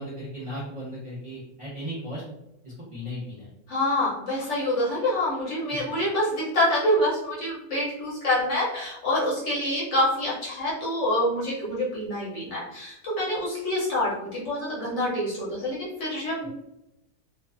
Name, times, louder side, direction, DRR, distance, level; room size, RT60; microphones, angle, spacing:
voice 1, 0.0-2.2 2.6-3.5 5.7-6.0, equal, 25° right, -8 dB, 0.8 m, -36 dB
voice 2, 3.7-16.5, left 1 dB, 60° left, -6 dB, 1.0 m, -26 dB
2.4 x 2.3 x 2.4 m, 0.89 s
omnidirectional pair, 1.6 m